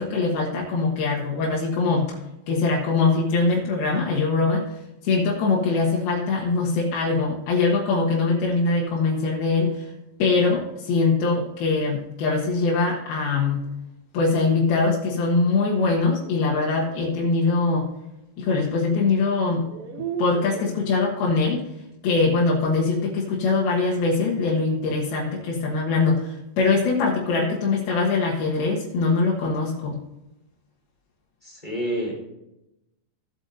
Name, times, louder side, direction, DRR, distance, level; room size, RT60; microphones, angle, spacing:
voice 1, 0.0-2.2 2.5-4.8 5.0-9.9 10.2-13.7 14.1-17.9 18.4-19.6 20.2-21.6 22.0-30.0, left 3 dB, 90° left, -4 dB, 3.3 m, -22 dB
sound 1, 16.0-17.2 18.7-18.8 19.5-20.8, right 7 dB, 70° right, 2.3 m, -35 dB
voice 2, 31.4-32.1, equal, 15° left, -3 dB, 3.2 m, -28 dB
17.0 x 8.1 x 2.6 m, 0.92 s
omnidirectional pair, 4.3 m